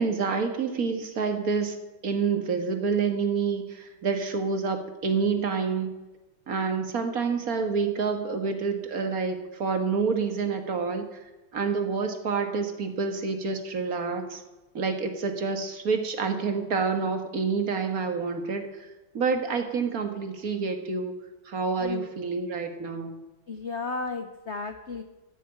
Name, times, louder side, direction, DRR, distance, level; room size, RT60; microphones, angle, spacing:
voice 1, 0.0-5.9 6.5-11.1 11.5-14.4 14.7-18.9 19.1-21.2 21.5-23.2, right 5 dB, 45° right, 5 dB, 1.8 m, -28 dB
voice 2, 23.5-25.0, left 4 dB, 70° left, 7 dB, 0.6 m, -34 dB
15.0 x 6.4 x 9.0 m, 1.1 s
omnidirectional pair, 2.2 m